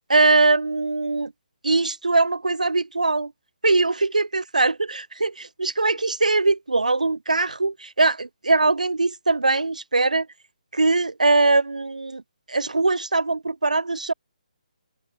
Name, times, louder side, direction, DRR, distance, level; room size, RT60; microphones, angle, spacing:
voice 1, 0.1-1.3 1.6-3.3 3.6-10.3 10.7-12.2 12.5-14.1, right 3 dB, 75° right, 1.2 m, -21 dB
open air
figure-of-eight pair, 140°, 4 cm